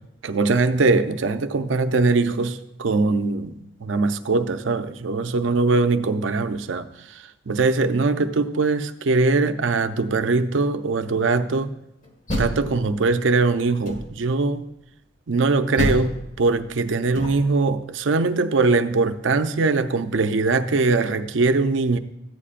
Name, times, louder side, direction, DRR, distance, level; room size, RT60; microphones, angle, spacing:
voice 1, 0.2-11.8 12.4-14.7 15.3-22.0, right 3 dB, 80° right, 0.6 m, -21 dB
Door, 12.0-13.3 13.8-14.4 15.8-17.7, equal, 40° left, 1.6 m, -29 dB
14.0 x 9.9 x 2.5 m
head